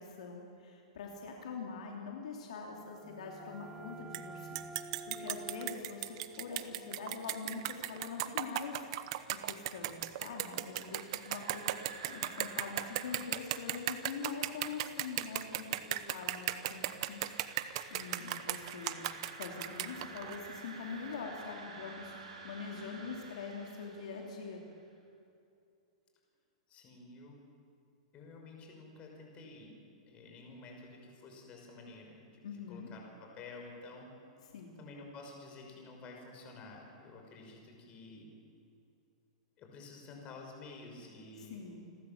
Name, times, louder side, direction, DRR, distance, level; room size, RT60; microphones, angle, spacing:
voice 1, 0.0-8.8 9.4-19.0 19.3-24.6 32.4-32.9 34.5-34.7 41.4-41.9, left 5 dB, 80° left, 0 dB, 3.0 m, -44 dB
sound 1, 2.7-8.2, right 2 dB, 15° right, 1.0 m, -50 dB
sound 2, 4.1-4.2 4.6-20.4, right 15 dB, 55° right, 1.0 m, -36 dB
sound 3, 10.6-24.6, right 3 dB, 85° right, 6.8 m, -52 dB
voice 2, 26.7-27.4 28.1-29.8 30.1-32.4 32.7-34.1 34.8-38.3 39.6-41.6, left 3 dB, 30° left, 1 dB, 5.7 m, -51 dB
29.0 x 13.0 x 7.3 m, 2.6 s
hypercardioid pair, 135°, 4 cm